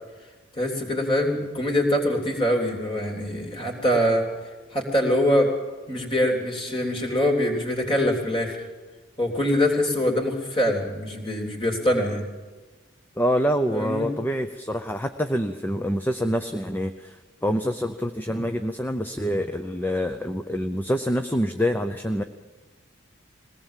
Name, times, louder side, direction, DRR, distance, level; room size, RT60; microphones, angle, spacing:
voice 1, 0.6-4.3 4.7-5.5 5.9-8.6 9.2-12.2 13.7-14.1, left 1 dB, 25° left, 1 dB, 3.5 m, -24 dB
voice 2, 13.2-22.2, equal, 10° left, 7 dB, 0.6 m, -26 dB
22.0 x 18.0 x 7.4 m, 1.3 s
head